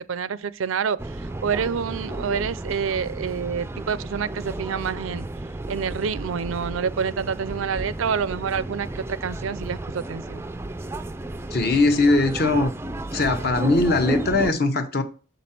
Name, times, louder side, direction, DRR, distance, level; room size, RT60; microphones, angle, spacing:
voice 1, 0.0-5.3 5.7-10.4, right 6 dB, 85° right, 0.4 m, -28 dB
sound 1, 1.0-14.5, right 1 dB, 10° right, 0.3 m, -33 dB
voice 2, 11.5-12.7 13.1-15.0, left 2 dB, 50° left, 0.9 m, -20 dB
6.6 x 5.1 x 4.3 m
head